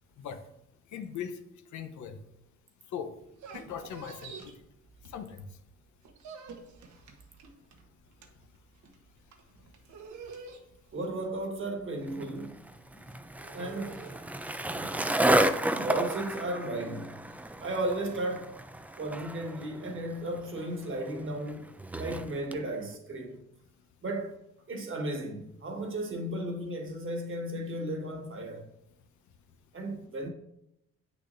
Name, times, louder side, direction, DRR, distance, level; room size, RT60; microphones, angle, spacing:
voice 1, 0.9-1.4 1.7-2.2 2.9-3.1 3.5-4.5 5.1-5.4, left 8 dB, 70° left, 0.9 m, -39 dB
sound 1, 3.2-5.5 5.8-18.2, right 4 dB, 70° right, 1.1 m, -49 dB
voice 2, 10.9-12.7 12.9-13.1 13.5-14.0 14.7-15.0 15.7-17.2 17.6-18.6 19.0-21.7 22.0-23.4 24.0-24.4 24.7-28.7 29.7-30.3, right 1 dB, 40° right, 1.5 m, -35 dB
Skateboard, 12.1-22.6, right 1 dB, 5° right, 0.4 m, -32 dB
8.3 x 6.4 x 2.6 m
cardioid pair, 90°, 30 cm